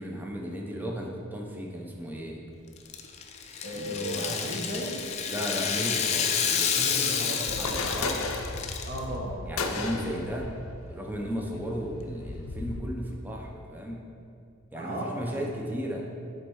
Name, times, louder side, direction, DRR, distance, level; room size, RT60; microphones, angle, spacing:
voice 1, 0.0-2.4 3.7-4.6 5.3-7.0 7.6-8.2 9.5-10.5 10.9-14.0 14.7-16.1, equal, 10° right, 0 dB, 0.7 m, -35 dB
Rattle (instrument), 2.8-9.0, left 7 dB, 30° left, 0.4 m, -29 dB
voice 2, 3.6-5.1 6.7-8.0 8.9-9.7 14.7-15.5, right 1 dB, 40° right, -3 dB, 1.1 m, -35 dB
sound 1, 7.5-12.8, left 3 dB, 80° left, 0.6 m, -35 dB
7.2 x 4.4 x 4.7 m, 2.5 s
head